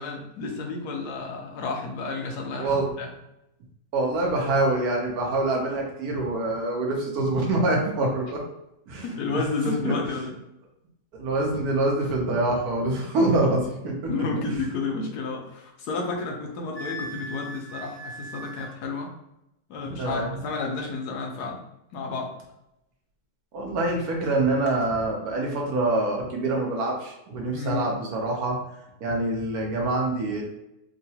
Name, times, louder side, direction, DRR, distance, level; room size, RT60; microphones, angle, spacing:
voice 1, 0.0-3.1 9.0-10.3 14.1-19.1 19.7-21.6 21.9-22.3 27.5-27.9, left 3 dB, 80° left, 0 dB, 1.2 m, -31 dB
voice 2, 3.9-8.4 8.9-9.0 9.6-9.9 11.1-14.0 20.0-20.3 23.5-28.6 29.0-30.4, right 2 dB, 70° right, -1 dB, 1.3 m, -25 dB
Wind instrument woodwind instrument, 16.7-18.8, equal, 60° left, 1.3 m, -39 dB
3.8 x 2.2 x 2.8 m, 0.87 s
omnidirectional pair, 1.7 m